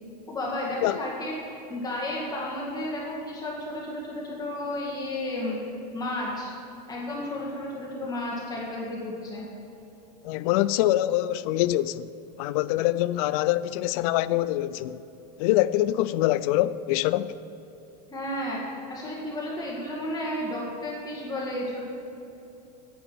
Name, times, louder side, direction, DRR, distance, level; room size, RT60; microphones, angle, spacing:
voice 1, 0.3-5.6 5.9-6.5 6.9-9.4 18.1-21.8, left 1 dB, 20° left, 1.8 m, -32 dB
voice 2, 10.2-12.1 12.4-15.0 15.4-17.3, left 15 dB, 60° left, 0.4 m, -24 dB
9.4 x 9.0 x 6.1 m
supercardioid pair, 145°, 21 cm